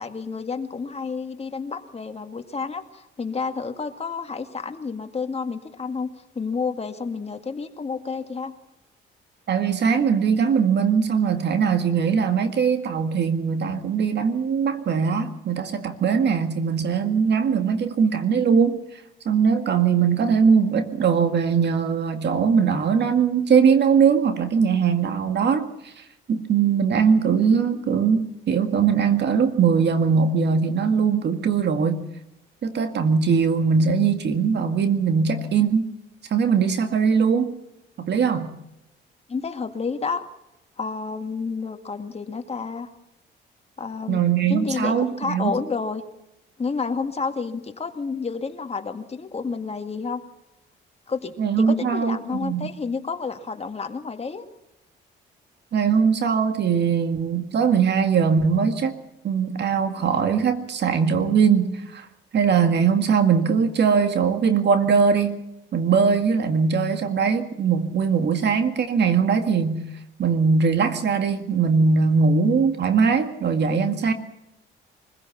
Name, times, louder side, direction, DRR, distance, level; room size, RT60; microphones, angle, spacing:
voice 1, 0.0-6.1 6.3-8.5 39.3-40.2 40.8-42.9 43.8-44.2 44.5-46.0 46.6-50.2 51.1-54.5, left 5 dB, 30° left, 6 dB, 2.0 m, -30 dB
voice 2, 9.5-18.8 19.3-25.9 26.3-32.0 32.6-35.9 36.3-37.5 38.0-38.5 44.1-45.5 51.4-52.7 55.7-58.9 59.2-62.1 62.3-65.4 65.7-69.9 70.2-74.1, right 6 dB, 60° right, 7 dB, 2.0 m, -21 dB
24.0 x 16.0 x 7.2 m, 0.88 s
cardioid pair, 90°, 20 cm